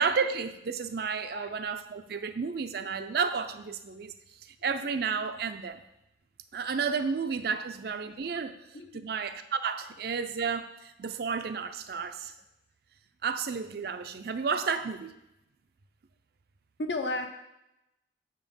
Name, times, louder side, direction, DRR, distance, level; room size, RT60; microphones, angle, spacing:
voice 1, 0.0-4.1 4.6-5.8 6.5-8.6 8.9-12.3 13.2-15.2, right 5 dB, 60° right, 9 dB, 0.4 m, -31 dB
voice 2, 16.8-17.3, left 2 dB, 75° left, 5 dB, 0.8 m, -33 dB
6.9 x 3.7 x 5.3 m, 0.87 s
head